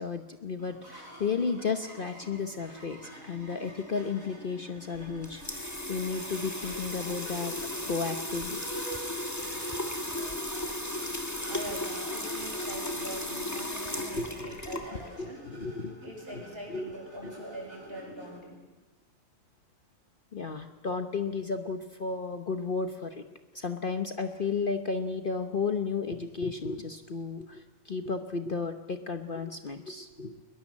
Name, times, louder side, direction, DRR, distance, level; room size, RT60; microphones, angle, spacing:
voice 1, 0.0-7.5 7.9-8.6 14.0-16.0 16.3-16.4 16.7-16.9 17.2-17.4 20.3-23.3 23.5-30.4, left 4 dB, 45° left, 7 dB, 1.1 m, -33 dB
sound 1, 0.6-18.4, right 1 dB, 85° right, 7.7 m, -49 dB
sound 2, 4.9-15.2, left 1 dB, 10° left, 1.9 m, -35 dB
voice 2, 11.5-15.4 16.0-18.6, right 1 dB, 45° right, 0 dB, 7.0 m, -43 dB
21.5 x 21.0 x 7.4 m, 1.1 s
omnidirectional pair, 1.4 m